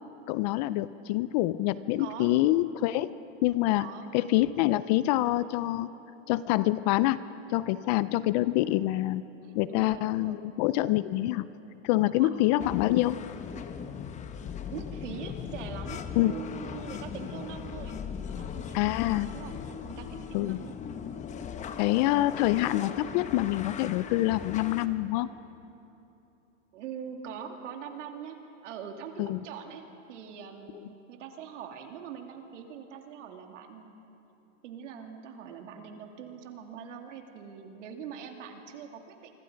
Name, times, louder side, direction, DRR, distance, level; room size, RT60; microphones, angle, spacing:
voice 1, 0.3-3.1 3.4-3.9 4.1-5.9 6.3-7.2 7.5-9.2 9.6-11.4 11.8-13.2 16.2-16.3 18.7-19.3 20.3-20.6 21.8-25.3 29.2-29.4, left 16 dB, 35° left, 16 dB, 0.4 m, -26 dB
voice 2, 2.0-2.3 3.8-4.1 8.0-8.1 9.4-10.4 12.2-12.4 14.7-19.6 19.8-20.7 26.7-28.4 28.6-29.8 30.1-34.0 34.6-39.3, right 7 dB, 70° right, 3 dB, 2.9 m, -43 dB
sound 1, 12.6-24.9, left 7 dB, 20° left, 0.9 m, -39 dB
27.5 x 25.0 x 5.2 m, 2.9 s
hypercardioid pair, 135°, 38 cm